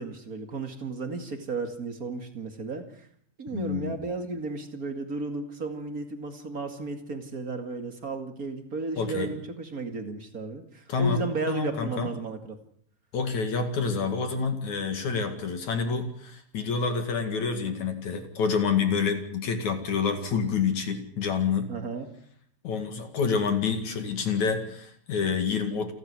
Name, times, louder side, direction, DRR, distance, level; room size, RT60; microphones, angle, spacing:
voice 1, 0.0-3.1 3.4-12.6 21.7-22.1, right 3 dB, 35° right, 7 dB, 1.5 m, -34 dB
voice 2, 3.5-4.1 9.0-9.3 10.9-12.1 13.1-21.7 22.6-25.9, left 5 dB, 50° left, 7 dB, 2.9 m, -28 dB
29.0 x 12.5 x 9.7 m, 0.64 s
omnidirectional pair, 5.2 m